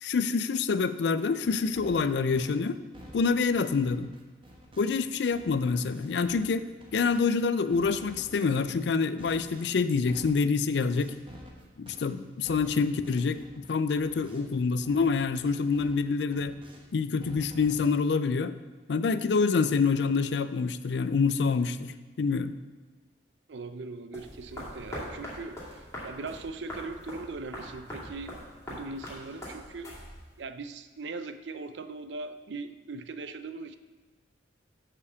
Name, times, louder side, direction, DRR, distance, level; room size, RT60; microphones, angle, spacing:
voice 1, 0.0-2.8 3.1-4.1 4.8-11.1 11.8-16.6 16.9-18.5 18.9-22.5, left 4 dB, 70° left, 13 dB, 0.4 m, -27 dB
sound 1, 1.2-7.4 7.7-14.6 14.8-16.9 17.2-17.9, equal, 30° right, 1.0 m, -51 dB
voice 2, 23.5-25.8 26.0-28.4 28.7-29.9 30.4-33.8, right 3 dB, 80° right, 11 dB, 0.5 m, -40 dB
sound 2, 24.1-30.4, equal, 15° left, 2.4 m, -42 dB
6.9 x 5.5 x 6.8 m, 1.3 s
head